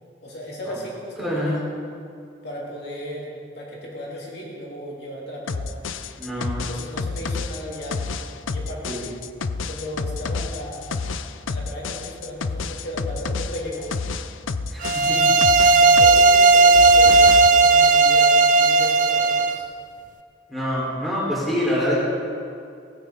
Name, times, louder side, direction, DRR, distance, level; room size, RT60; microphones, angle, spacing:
voice 1, 0.2-1.6 2.4-5.8 6.7-8.2 8.5-9.0 9.6-11.1 11.5-13.9 15.0-15.4 15.7-19.7, equal, 55° left, -4 dB, 2.9 m, -35 dB
voice 2, 1.2-1.6 6.2-6.7 8.8-9.0 14.7-14.9 20.5-22.0, equal, ahead, -7 dB, 4.6 m, -25 dB
sound 1, 5.5-16.3 16.5-17.5, left 4 dB, 90° left, 0.6 m, -29 dB
sound 2, 14.8-19.6, right 3 dB, 40° right, 0.5 m, -15 dB
17.0 x 16.5 x 4.0 m, 2.4 s
head